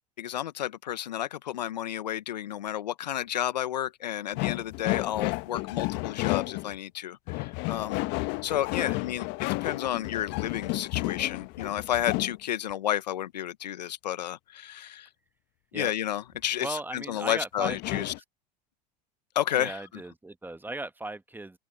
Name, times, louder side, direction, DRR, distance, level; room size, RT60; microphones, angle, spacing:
voice 1, 0.2-9.3 9.6-15.1 15.7-18.1 19.3-19.8, left 11 dB, 85° left, 1.1 m, -31 dB
sound 1, 4.3-6.8 7.3-12.4 17.6-18.2, left 24 dB, 60° left, 1.1 m, -32 dB
voice 2, 16.6-18.1 19.6-21.6, right 2 dB, 10° right, 1.2 m, -37 dB
open air
hypercardioid pair, 75°, 21 cm